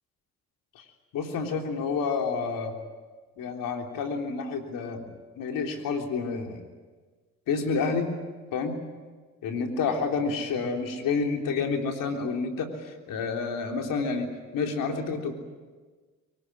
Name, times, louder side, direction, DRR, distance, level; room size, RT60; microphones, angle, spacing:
voice 1, 1.1-2.7 3.4-5.1 5.4-6.6 7.5-8.1 8.5-8.8 9.4-15.3, left 4 dB, 80° left, 3 dB, 3.5 m, -29 dB
24.0 x 19.0 x 9.8 m, 1.4 s
supercardioid pair, 55°, 33 cm